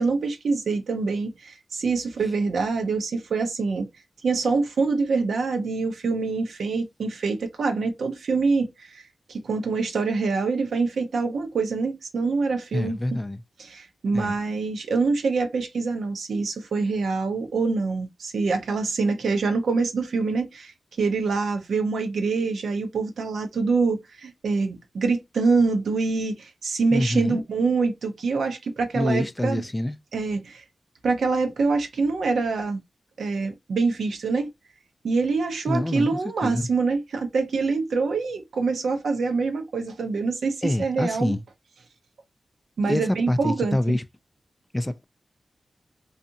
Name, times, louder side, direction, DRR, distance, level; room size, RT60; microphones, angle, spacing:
voice 1, 0.0-3.9 4.2-9.0 9.3-13.0 13.6-29.6 30.1-30.6 31.0-32.8 33.2-34.5 35.0-41.3 42.8-44.0, right 4 dB, 85° right, 0.6 m, -25 dB
voice 2, 12.7-13.4 14.1-14.4 26.9-27.4 28.9-30.0 35.7-36.7 40.6-41.4 42.9-44.0 44.7-45.0, left 1 dB, 20° left, 0.4 m, -26 dB
2.7 x 2.4 x 2.6 m
cardioid pair, 45°, 0 cm